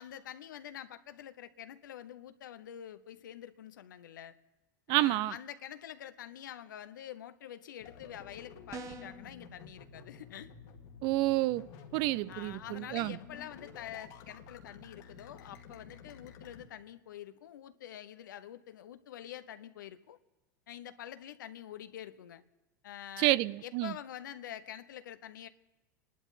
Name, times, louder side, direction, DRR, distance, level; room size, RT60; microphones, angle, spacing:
voice 1, 0.0-4.4 4.9-10.5 12.3-20.2 20.7-22.4 22.8-25.5, left 10 dB, 85° left, 0.8 m, -46 dB
voice 2, 4.9-5.3 11.0-13.2 23.2-23.9, right 18 dB, 55° right, 0.4 m, -29 dB
sound 1, 7.8-16.6, left 6 dB, 60° left, 2.0 m, -52 dB
sound 2, 8.7-9.3, right 4 dB, 30° right, 1.2 m, -43 dB
30.0 x 11.5 x 4.1 m
hypercardioid pair, 105°, 10 cm